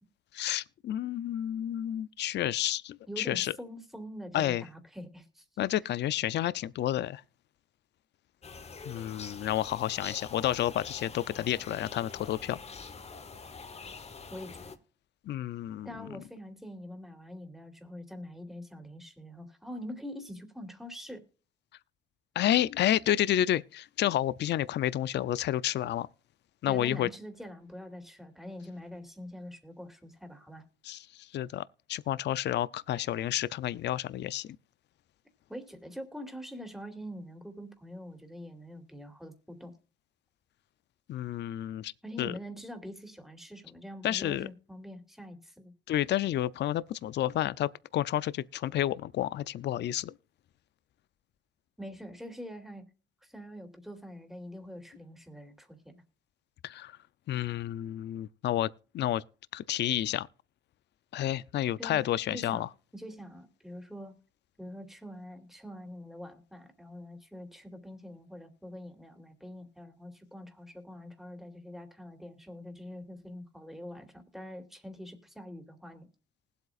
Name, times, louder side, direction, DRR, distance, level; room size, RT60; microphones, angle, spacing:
voice 1, 0.3-3.5 4.3-4.6 5.6-7.2 8.9-12.6 15.3-15.9 22.4-26.1 26.6-27.1 30.8-31.0 31.3-31.6 31.9-34.5 41.1-41.9 42.2-42.3 44.0-44.5 45.9-50.1 56.6-56.9 57.3-58.7 58.9-59.2 59.5-60.3 61.1-62.7, left 12 dB, 60° left, 0.5 m, -30 dB
voice 2, 3.1-5.4 14.3-14.7 15.8-21.2 26.6-30.7 35.5-39.7 42.0-45.7 51.8-52.9 53.2-56.0 61.8-62.0 62.3-62.7 62.9-64.1 64.6-76.1, equal, ahead, 2.5 m, -44 dB
sound 1, 8.4-14.8, left 5 dB, 30° left, 1.1 m, -45 dB
19.5 x 8.0 x 2.4 m
cardioid pair, 90°, 20 cm